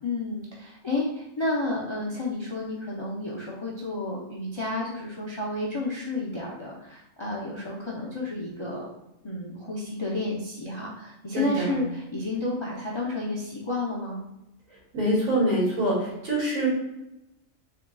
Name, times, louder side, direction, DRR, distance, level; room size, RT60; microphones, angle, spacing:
voice 1, 0.0-8.9 9.2-14.2, left 2 dB, 45° left, -5 dB, 0.3 m, -31 dB
voice 2, 11.3-11.7 14.9-16.7, right 1 dB, 80° right, -7 dB, 2.1 m, -25 dB
3.7 x 3.6 x 2.3 m, 0.91 s
omnidirectional pair, 1.4 m